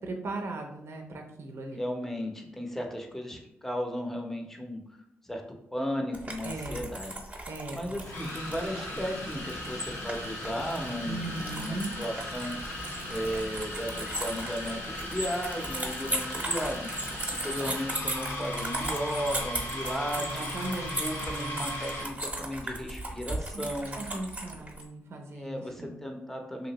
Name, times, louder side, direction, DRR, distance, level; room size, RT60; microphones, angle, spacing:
voice 1, 0.0-1.8 6.4-6.8 7.5-7.9 11.0-11.9 20.2-21.6 23.5-23.6 23.9-25.9, right 2 dB, 55° right, 3 dB, 0.5 m, -38 dB
voice 2, 1.7-4.8 5.3-5.4 5.7-7.2 7.7-12.5 13.0-16.9 17.3-20.6 21.0-24.0 24.5-24.6 25.3-26.7, equal, 5° left, 2 dB, 0.7 m, -35 dB
sound 1, 6.1-24.8, right 1 dB, 25° right, 0.9 m, -37 dB
sound 2, 8.0-22.2, left 1 dB, 80° left, 1.1 m, -37 dB
2.9 x 2.6 x 2.9 m, 0.75 s
supercardioid pair, 40°, 5 cm